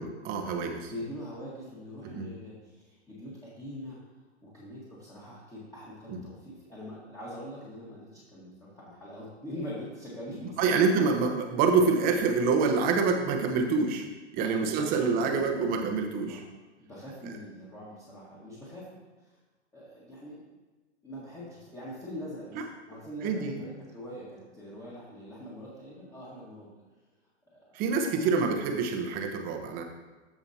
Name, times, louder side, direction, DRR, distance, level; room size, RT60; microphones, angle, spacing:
voice 1, 0.0-0.9 2.0-2.3 10.6-14.1 14.3-16.4 22.6-22.7 23.2-23.6 27.7-29.8, right 4 dB, 25° right, 4 dB, 0.9 m, -26 dB
voice 2, 0.9-4.0 4.4-10.8 14.4-15.5 16.3-16.4 16.8-18.9 19.2-19.4 19.7-20.4 21.0-26.7 27.5-28.4, equal, 10° left, -7 dB, 1.6 m, -43 dB
14.5 x 5.1 x 2.8 m, 1.2 s
hypercardioid pair, 135°, 37 cm